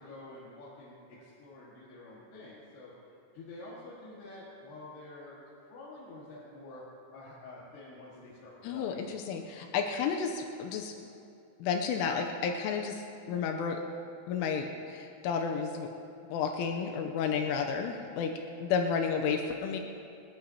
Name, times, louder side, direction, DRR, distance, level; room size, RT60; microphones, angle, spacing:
voice 1, 0.0-2.9 3.3-6.8 7.1-9.0, left 2 dB, 60° left, -8 dB, 3.6 m, -48 dB
voice 2, 8.6-10.9 11.6-13.8 14.3-15.9 16.3-18.3 18.6-19.8, left 6 dB, 85° left, 3 dB, 3.1 m, -32 dB
28.0 x 11.5 x 2.9 m, 2.6 s
omnidirectional pair, 5.8 m